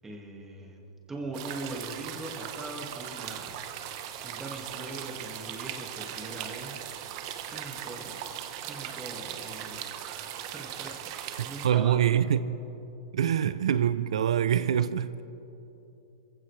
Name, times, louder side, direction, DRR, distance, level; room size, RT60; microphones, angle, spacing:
voice 1, 0.0-0.8 1.1-6.8 7.1-12.0, right 2 dB, 10° right, 1.9 m, -42 dB
sound 1, 1.3-11.7, right 10 dB, 40° right, 1.0 m, -39 dB
voice 2, 11.6-12.4 13.1-15.2, right 9 dB, 85° right, 0.5 m, -24 dB
25.0 x 15.5 x 3.3 m
hypercardioid pair, 155°, 3 cm